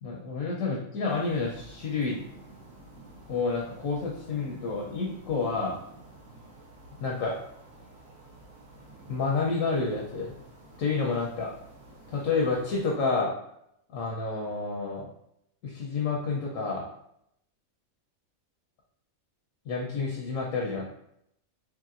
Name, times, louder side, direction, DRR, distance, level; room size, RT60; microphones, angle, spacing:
voice 1, 0.0-2.2 3.3-5.8 7.0-7.4 9.1-10.3 10.8-11.5 12.1-13.3 13.9-15.1 15.6-16.9 19.7-20.9, left 4 dB, 75° left, -2 dB, 0.9 m, -29 dB
sound 1, 1.0-13.0, right 2 dB, 65° right, 1.3 m, -51 dB
3.1 x 2.8 x 2.4 m, 0.76 s
omnidirectional pair, 1.5 m